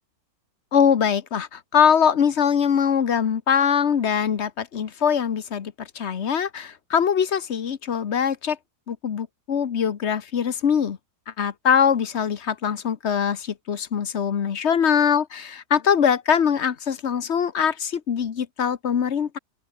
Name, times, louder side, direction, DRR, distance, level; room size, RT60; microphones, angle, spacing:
voice 1, 0.7-8.6 8.9-11.0 11.4-19.4, left 7 dB, 45° left, 1.2 m, -22 dB
open air
omnidirectional pair, 1.8 m